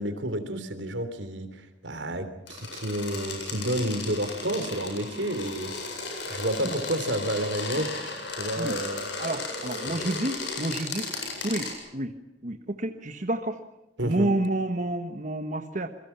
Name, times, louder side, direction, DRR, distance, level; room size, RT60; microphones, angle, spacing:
voice 1, 0.0-5.7 6.3-7.9 8.3-9.0 14.0-14.3, right 1 dB, 80° right, 10 dB, 3.3 m, -30 dB
sound 1, 2.5-11.7, left 3 dB, 85° left, 7.9 m, -35 dB
voice 2, 9.2-11.1 11.4-12.1 12.4-13.6 14.0-15.9, right 1 dB, 45° right, 7 dB, 1.3 m, -29 dB
28.0 x 22.0 x 5.8 m, 0.94 s
head